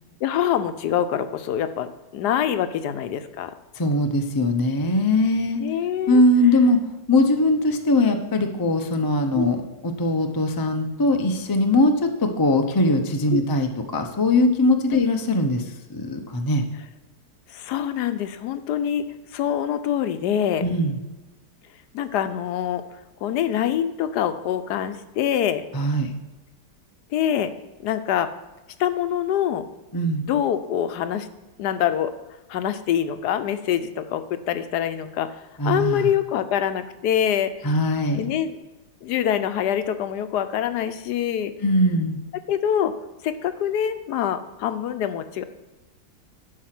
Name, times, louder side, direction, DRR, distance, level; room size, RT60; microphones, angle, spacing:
voice 1, 0.2-1.9 2.1-3.5 5.6-6.2 9.3-9.4 13.3-13.4 14.9-15.0 17.5-19.0 19.3-20.6 21.9-22.8 23.2-25.6 27.1-27.5 27.8-28.3 28.8-29.6 30.3-31.3 31.6-32.1 32.5-35.3 35.6-37.5 38.2-38.5 39.0-41.5 42.5-42.9 43.2-45.4, left 10 dB, 75° left, 11 dB, 1.2 m, -25 dB
voice 2, 3.7-5.6 6.1-6.8 7.1-16.6 20.6-21.0 25.7-26.1 29.9-30.2 35.6-36.1 37.6-38.3 41.6-42.2, left 1 dB, 30° left, 5 dB, 0.3 m, -21 dB
11.5 x 4.8 x 5.9 m, 1.1 s
omnidirectional pair, 1.8 m